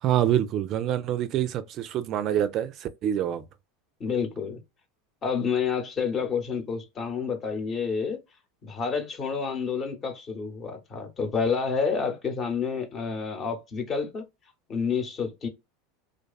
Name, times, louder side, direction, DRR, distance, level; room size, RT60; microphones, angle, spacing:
voice 1, 0.0-3.4, right 11 dB, 45° right, 0.3 m, -26 dB
voice 2, 4.0-4.6 5.2-8.2 8.6-14.2 14.7-15.5, left 5 dB, 35° left, 0.8 m, -29 dB
2.5 x 2.3 x 2.3 m
hypercardioid pair, 95°, 0 cm